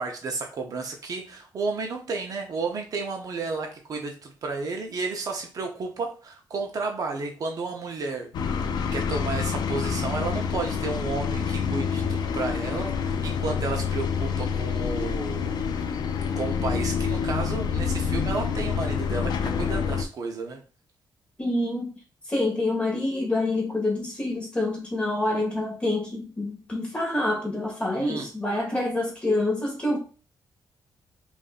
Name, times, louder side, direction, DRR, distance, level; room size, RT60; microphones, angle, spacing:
voice 1, 0.0-15.6 16.4-20.6 25.3-25.4 27.9-28.3, right 3 dB, 50° right, 0.7 m, -32 dB
sound 1, 8.3-20.1, left 6 dB, 65° left, 0.4 m, -27 dB
voice 2, 21.4-21.9 22.3-30.0, left 2 dB, 15° left, 1.4 m, -27 dB
5.1 x 2.6 x 2.4 m
wide cardioid pair, 155°, 8 cm